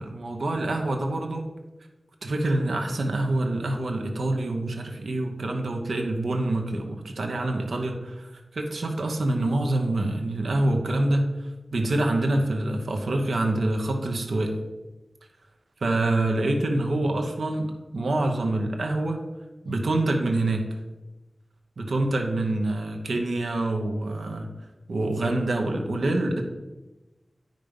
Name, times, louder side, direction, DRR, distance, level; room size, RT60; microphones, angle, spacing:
voice 1, 0.0-1.4 2.2-14.5 15.8-19.2 19.6-20.6 21.8-24.5 24.9-26.4, right 2 dB, 90° right, 3 dB, 1.1 m, -26 dB
9.3 x 5.2 x 5.3 m, 1.1 s
wide cardioid pair, 70°, 0 cm